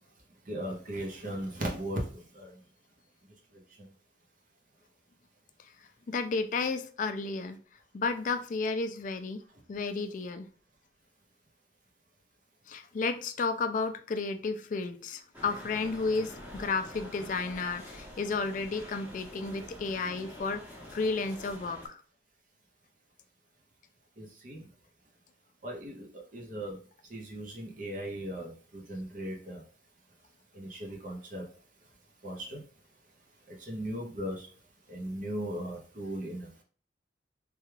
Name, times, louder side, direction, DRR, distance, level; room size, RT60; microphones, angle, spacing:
voice 1, 0.5-2.0 2.4-2.5 24.2-24.6 25.6-26.1 26.3-26.8 27.1-28.5 28.9-29.6 30.6-31.4 32.2-32.6 33.7-34.4 34.9-36.5, right 1 dB, 45° right, 0.7 m, -37 dB
voice 2, 6.1-7.6 7.9-9.4 9.7-10.5 12.7-20.6 20.9-22.0, left 4 dB, 45° left, 0.3 m, -32 dB
sound 1, 15.3-21.9, left 1 dB, 10° right, 0.9 m, -46 dB
3.3 x 2.3 x 3.1 m
head